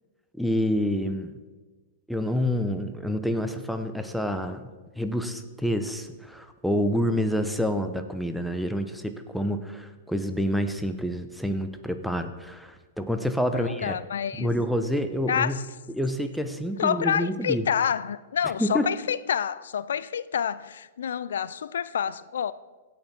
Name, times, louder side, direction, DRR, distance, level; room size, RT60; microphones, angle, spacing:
voice 1, 0.4-1.3 2.1-4.7 5.0-14.0 14.4-15.6 15.9-17.6 18.6-18.9, equal, ahead, 0.9 m, -28 dB
voice 2, 13.5-14.5 15.3-15.6 16.8-22.5, left 8 dB, 75° left, 0.4 m, -28 dB
17.0 x 5.9 x 4.3 m
hypercardioid pair, 115°, 0 cm